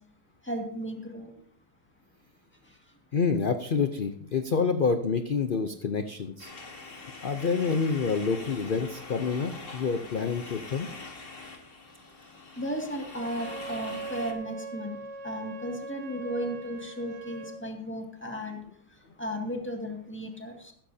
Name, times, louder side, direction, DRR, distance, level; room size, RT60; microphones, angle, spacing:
voice 1, 0.4-1.3 12.6-15.0 15.2-18.6 19.2-20.7, equal, 5° left, 2 dB, 2.0 m, -35 dB
voice 2, 3.1-6.5 7.2-10.9, left 5 dB, 55° left, 8 dB, 0.5 m, -28 dB
sound 1, 6.4-14.3, left 3 dB, 35° left, 1.7 m, -44 dB
Wind instrument woodwind instrument, 13.1-17.6, right 3 dB, 75° right, 2.2 m, -41 dB
15.0 x 13.5 x 2.8 m, 0.64 s
omnidirectional pair, 1.8 m